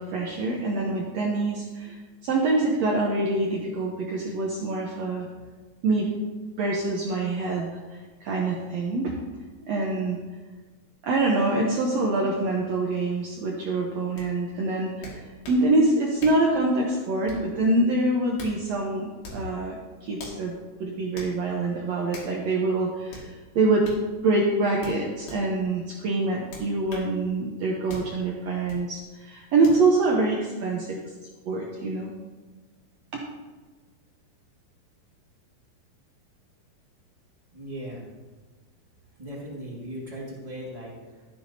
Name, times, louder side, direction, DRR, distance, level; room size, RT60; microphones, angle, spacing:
voice 1, 0.0-2.0 2.2-5.3 5.8-6.2 6.6-9.1 9.7-10.2 11.0-23.9 24.2-31.0 31.5-32.1 33.1-33.2, right 2 dB, 80° right, -1 dB, 1.5 m, -25 dB
sound 1, 14.2-14.3 15.0-15.6 16.2-16.5 17.3-17.6 18.1-18.6 19.2-19.5 20.2-20.4 21.2-21.3 22.1-22.4 23.1-23.3 23.8-24.0 24.8-25.4 26.5-27.1 27.9-28.1 28.7-28.8 29.6-29.8, left 2 dB, 85° left, 4.2 m, -41 dB
voice 2, 37.5-38.0 39.2-41.2, equal, 25° right, -5 dB, 0.8 m, -38 dB
12.5 x 10.0 x 2.8 m, 1.3 s
omnidirectional pair, 4.3 m